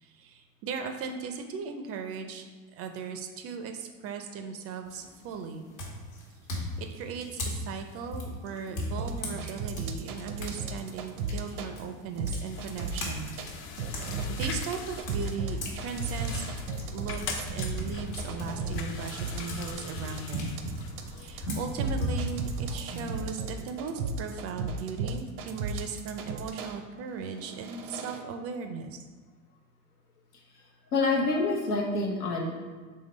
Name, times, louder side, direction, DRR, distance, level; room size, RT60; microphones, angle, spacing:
voice 1, 0.0-2.5 2.7-5.6 6.8-13.3 14.3-16.5 16.9-20.6 21.1-29.0, right 5 dB, 35° right, 6 dB, 0.4 m, -38 dB
sound 1, 4.9-5.2 5.8-10.6 10.9-15.8 16.1-23.5, equal, 70° left, 1.3 m, -37 dB
sound 2, 9.0-11.7 12.2-13.5 13.8-26.8 27.3-28.2, right 3 dB, 85° right, 0.6 m, -35 dB
sound 3, 12.5-22.7, left 5 dB, 30° left, 0.4 m, -43 dB
voice 2, 30.9-32.6, left 3 dB, 90° left, -1 dB, 1.0 m, -28 dB
3.7 x 3.3 x 4.0 m, 1.4 s
hypercardioid pair, 90°, 45 cm